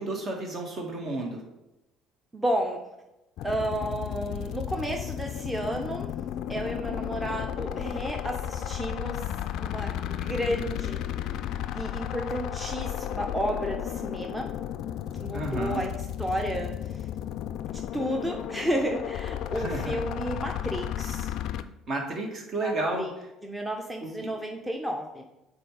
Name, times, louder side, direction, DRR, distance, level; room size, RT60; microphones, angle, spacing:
voice 1, 0.0-1.4 15.3-15.9 19.5-20.0 21.9-23.1 24.0-24.3, right 2 dB, 45° right, 1 dB, 1.7 m, -32 dB
voice 2, 2.3-2.8 3.4-6.1 6.5-9.3 9.6-11.0 11.7-14.5 15.1-15.9 16.2-17.1 17.7-21.3 22.6-22.7 23.0-23.1 23.4-25.3, equal, 10° right, 2 dB, 0.8 m, -32 dB
sound 1, 3.4-21.6, left 11 dB, 65° left, 0.3 m, -33 dB
7.6 x 2.7 x 4.8 m, 0.93 s
hypercardioid pair, 60°, 0 cm